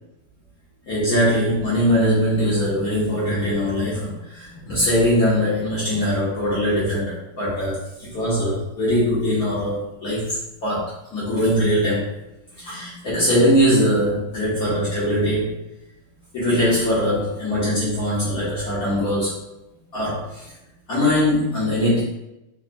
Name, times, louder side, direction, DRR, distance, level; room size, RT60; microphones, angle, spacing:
voice 1, 0.8-12.1 12.5-15.6 16.3-19.4 19.9-20.5 20.9-22.0, equal, 70° left, -9 dB, 0.9 m, -21 dB
3.4 x 2.0 x 2.5 m, 0.92 s
omnidirectional pair, 2.4 m